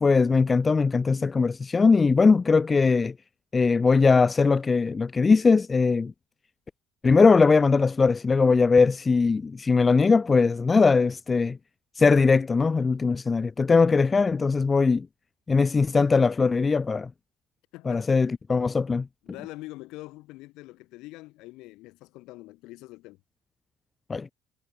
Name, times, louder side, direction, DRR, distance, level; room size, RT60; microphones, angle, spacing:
voice 1, 0.0-3.1 3.5-6.1 7.0-11.6 12.0-15.1 15.5-17.1 17.9-19.1 24.1-24.3, left 4 dB, 30° left, 0.4 m, -20 dB
voice 2, 17.7-18.3 19.2-23.2, left 20 dB, 70° left, 3.0 m, -44 dB
hypercardioid pair, 65°, 0 cm